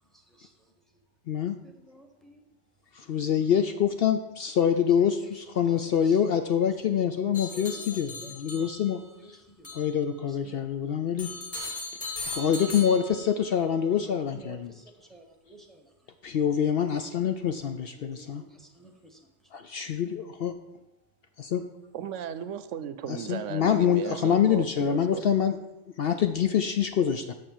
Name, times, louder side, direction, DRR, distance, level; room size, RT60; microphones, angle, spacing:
voice 1, 0.1-0.5 1.6-2.4 3.1-3.3 4.9-9.7 10.1-10.6 11.6-11.7 14.0-15.9 17.8-19.2, right 1 dB, ahead, 1.1 m, -51 dB
voice 2, 2.9-9.0 9.3-9.4 9.7-11.3 12.3-14.8 16.2-18.4 19.5-20.6 21.4-21.6 23.1-25.6 26.0-27.3, left 8 dB, 60° left, 0.7 m, -26 dB
sound 1, 7.3-9.1 9.6-9.9 11.2-13.5, left 3 dB, 35° left, 1.7 m, -38 dB
voice 3, 21.9-25.2, right 9 dB, 75° right, 0.9 m, -36 dB
6.7 x 6.1 x 7.5 m
omnidirectional pair, 1.3 m